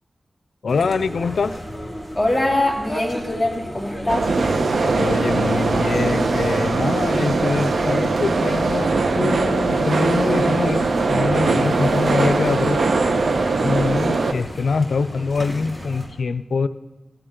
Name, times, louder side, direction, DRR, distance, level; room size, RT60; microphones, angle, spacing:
voice 1, 0.6-1.6 4.9-12.8 13.6-16.7, left 4 dB, 90° left, 14 dB, 0.5 m, -24 dB
sound 1, 0.7-16.1, equal, 10° right, 4.3 m, -34 dB
voice 2, 2.1-4.3 6.9-7.3, left 1 dB, 5° left, -3 dB, 2.9 m, -23 dB
sound 2, 4.1-14.3, right 3 dB, 85° right, 1.0 m, -20 dB
18.0 x 15.0 x 3.9 m, 1.1 s
wide cardioid pair, 80°, 0 cm